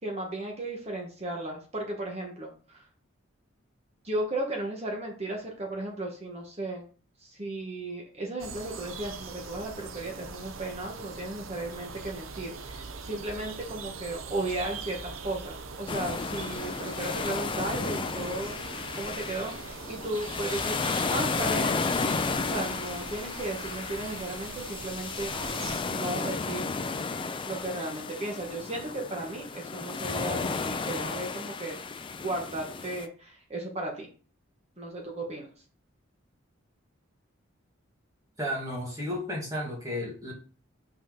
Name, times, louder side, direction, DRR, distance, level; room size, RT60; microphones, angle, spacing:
voice 1, 0.0-2.8 4.0-6.8 7.2-20.8 21.1-21.8 22.4-25.3 25.9-26.7 27.5-31.8 32.2-34.1 34.8-35.5, right 2 dB, 30° right, 0 dB, 1.4 m, -35 dB
sound 1, 8.4-25.8, right 4 dB, 85° right, 0.7 m, -42 dB
sound 2, 15.9-33.1, left 4 dB, 25° left, 0.4 m, -33 dB
voice 2, 38.4-40.3, left 1 dB, 15° right, -3 dB, 2.3 m, -33 dB
5.5 x 4.4 x 3.9 m, 0.38 s
head